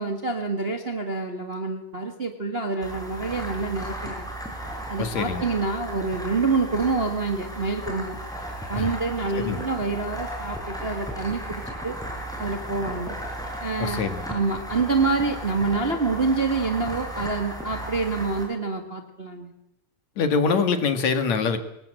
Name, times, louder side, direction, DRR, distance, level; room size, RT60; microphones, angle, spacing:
voice 1, 0.0-4.3 4.9-8.2 8.7-12.0 12.4-13.1 13.6-14.0 14.3-19.5, right 3 dB, 25° right, 5 dB, 1.3 m, -27 dB
sound 1, 2.8-18.4, right 1 dB, ahead, 6.3 m, -35 dB
voice 2, 5.0-5.4 8.7-8.9 9.3-9.6 13.8-14.2 20.2-21.6, left 5 dB, 60° left, 8 dB, 3.0 m, -24 dB
25.0 x 21.0 x 7.8 m, 0.85 s
omnidirectional pair, 3.7 m